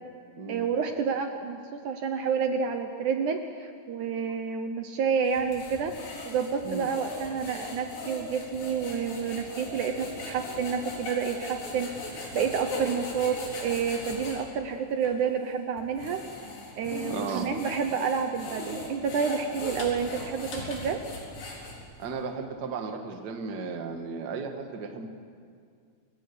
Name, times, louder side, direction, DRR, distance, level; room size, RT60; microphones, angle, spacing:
voice 1, 0.5-6.0 6.3-16.2 16.8-21.0, right 6 dB, 70° right, 6 dB, 2.2 m, -29 dB
sound 1, 5.2-14.4 15.0-15.1 15.8-22.0, left 2 dB, 70° left, 5.7 m, -39 dB
voice 2, 17.1-17.4 22.0-25.1, right 5 dB, 40° right, 5 dB, 1.7 m, -35 dB
28.0 x 17.0 x 8.4 m, 2.2 s
omnidirectional pair, 4.1 m